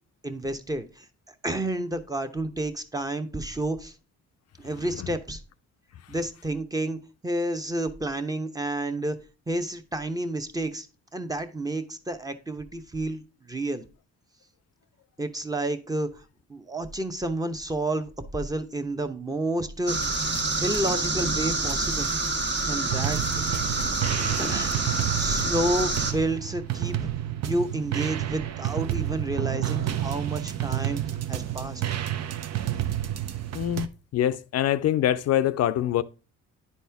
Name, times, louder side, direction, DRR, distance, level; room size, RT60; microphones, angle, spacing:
voice 1, 0.2-1.1 1.4-3.9 4.6-5.4 6.1-9.2 9.5-10.9 11.1-13.8 15.2-16.2 16.5-22.2 22.7-23.4 24.4-24.8 25.2-27.1 27.4-31.0 31.3-31.8, right 1 dB, 10° right, 0.8 m, -30 dB
sound 1, 19.9-26.1, right 3 dB, 40° right, 1.2 m, -27 dB
sound 2, 22.9-33.9, right 12 dB, 60° right, 0.6 m, -30 dB
voice 2, 33.5-36.0, left 11 dB, 55° left, 0.4 m, -24 dB
10.5 x 4.2 x 3.4 m
cardioid pair, 90°, 30 cm